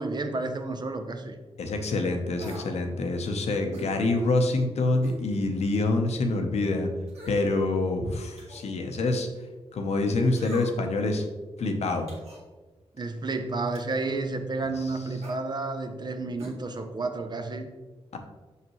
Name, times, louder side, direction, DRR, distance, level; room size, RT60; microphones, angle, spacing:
voice 1, 0.0-1.4 12.9-17.7, right 3 dB, 40° right, 6 dB, 0.7 m, -31 dB
voice 2, 1.6-6.9 7.3-9.3 9.7-11.3 11.6-12.1 14.8-14.9 18.1-18.2, left 2 dB, 80° left, 4 dB, 0.8 m, -26 dB
sound 1, 2.4-2.7 3.7-3.9 5.0-5.2 5.7-5.8 7.1-7.5 8.4-8.7 10.4-10.9 12.1-12.4 13.7-14.0 15.2-15.4 16.4-16.6 16.8-16.9, right 1 dB, 85° right, 1.6 m, -43 dB
6.0 x 5.5 x 3.1 m, 1.2 s
cardioid pair, 70°, 11 cm